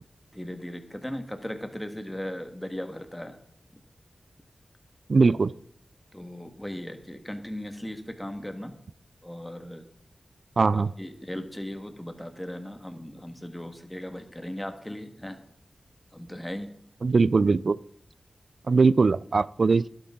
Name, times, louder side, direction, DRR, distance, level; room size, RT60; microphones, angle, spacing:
voice 1, 0.3-3.3 3.7-3.8 6.1-8.7 9.2-9.8 10.7-15.4 16.1-16.7, left 1 dB, 10° left, 6 dB, 1.7 m, -37 dB
voice 2, 5.1-5.5 10.6-10.9 17.0-17.8 18.7-19.9, right 4 dB, 65° right, 20 dB, 0.3 m, -21 dB
11.5 x 10.0 x 3.8 m, 0.66 s
cardioid pair, 55°, 0 cm